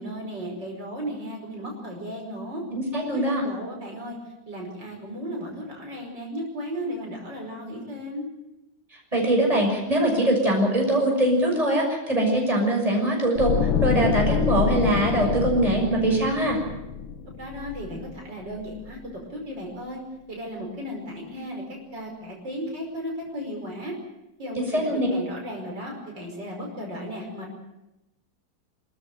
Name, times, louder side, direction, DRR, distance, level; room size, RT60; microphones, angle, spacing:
voice 1, 0.0-2.6 3.1-4.2 4.5-8.3 17.4-19.0 19.3-20.0 20.3-21.6 21.9-24.0 24.4-27.5, equal, 65° right, 0 dB, 5.9 m, -35 dB
voice 2, 2.7-3.4 9.1-13.5 13.8-16.6 24.6-25.1, right 1 dB, 15° right, 0 dB, 6.6 m, -22 dB
sound 1, 13.4-18.4 18.7-19.0, left 7 dB, 85° left, 2.0 m, -27 dB
27.0 x 14.0 x 9.3 m, 0.93 s
omnidirectional pair, 2.1 m